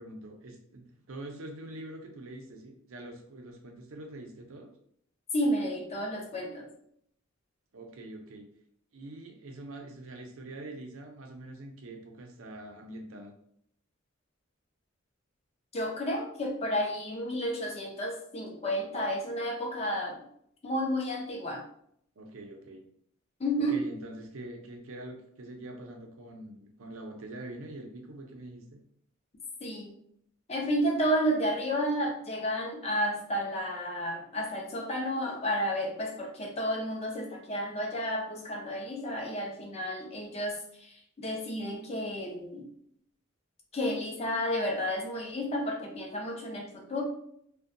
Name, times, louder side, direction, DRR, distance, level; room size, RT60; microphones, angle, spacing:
voice 1, 0.0-4.7 7.7-8.5 8.9-13.3 22.2-22.8 23.6-28.8, right 1 dB, 90° right, 3 dB, 0.5 m, -44 dB
voice 2, 5.3-6.7 15.7-20.3 20.6-21.6 23.4-23.8 29.6-29.9 30.5-42.7 43.7-47.0, equal, 30° left, 1 dB, 0.5 m, -31 dB
2.6 x 2.2 x 2.5 m, 0.68 s
head